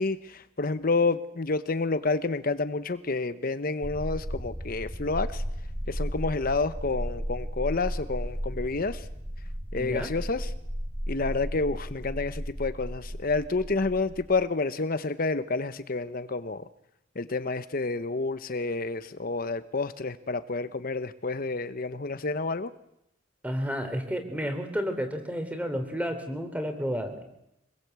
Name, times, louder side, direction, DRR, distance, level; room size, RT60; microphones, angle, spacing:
voice 1, 0.0-5.4 5.9-9.1 9.7-10.5 11.1-16.7 17.2-22.7, left 3 dB, 50° left, 12 dB, 0.8 m, -29 dB
sound 1, 3.8-14.4, equal, 35° right, 4.0 m, -35 dB
voice 2, 9.7-10.1 23.4-27.2, equal, 10° right, 7 dB, 3.5 m, -31 dB
26.5 x 21.0 x 8.2 m, 0.83 s
head